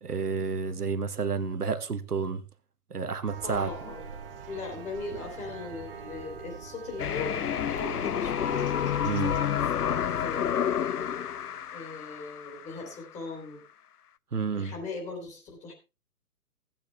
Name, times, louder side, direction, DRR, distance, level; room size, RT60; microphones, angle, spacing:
voice 1, 0.0-2.4 2.9-3.7 9.0-9.3 14.3-14.7, right 5 dB, 80° right, 1.3 m, -30 dB
sound 1, 3.3-9.4, right 6 dB, 40° right, 1.4 m, -44 dB
voice 2, 3.4-4.0 4.5-8.7 9.2-11.2 11.7-13.6 14.5-15.7, left 3 dB, 15° left, 3.1 m, -39 dB
sound 2, 7.0-12.9, left 9 dB, 85° left, 0.6 m, -29 dB
15.0 x 8.9 x 3.3 m
figure-of-eight pair, 135°, 45 cm